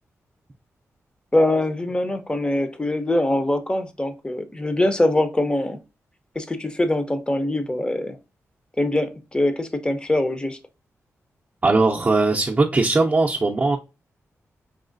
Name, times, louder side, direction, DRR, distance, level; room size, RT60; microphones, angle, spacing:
voice 1, 1.3-5.8 6.4-8.2 8.8-10.6, left 1 dB, 15° left, 0.7 m, -23 dB
voice 2, 11.6-13.8, right 3 dB, 30° right, 0.6 m, -19 dB
4.8 x 2.9 x 2.5 m
cardioid pair, 80°, 5 cm